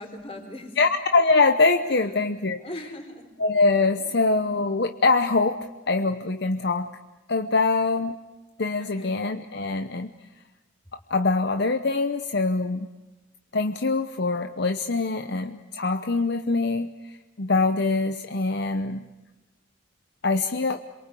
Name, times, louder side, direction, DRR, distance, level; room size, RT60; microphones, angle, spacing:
voice 1, 0.0-0.8 1.8-2.3 2.6-3.3 8.8-9.1, left 1 dB, 30° left, 4 dB, 4.2 m, -40 dB
voice 2, 0.8-2.6 3.4-6.9 7.3-8.1 8.6-10.1 11.1-12.9 13.5-19.0 20.2-20.8, left 3 dB, 55° left, 8 dB, 0.9 m, -23 dB
27.5 x 23.0 x 8.4 m, 1.1 s
head